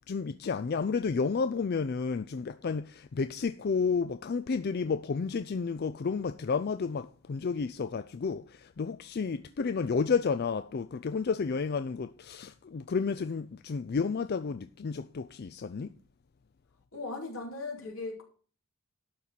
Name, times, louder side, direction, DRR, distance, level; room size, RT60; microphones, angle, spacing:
voice 1, 0.1-15.9, left 5 dB, 45° left, 0.4 m, -31 dB
voice 2, 16.9-18.2, left 3 dB, 75° left, 3.1 m, -38 dB
12.0 x 4.4 x 8.1 m
head